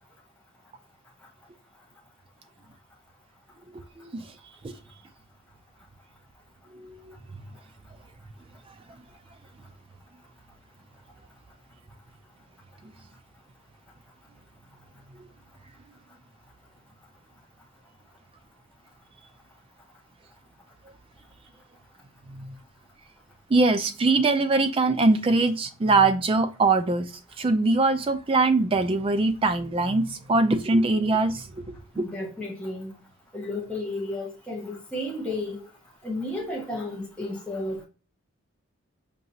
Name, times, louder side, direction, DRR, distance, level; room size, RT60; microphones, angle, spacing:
voice 1, 3.7-4.3 4.6-4.8 6.7-7.2 12.8-12.9 15.2-15.3 22.3-22.6 23.5-32.1, right 3 dB, 25° right, 0.3 m, -23 dB
voice 2, 31.9-32.9 33.3-35.6 36.0-37.8, left 2 dB, 5° left, 0.8 m, -32 dB
5.3 x 2.8 x 2.7 m
head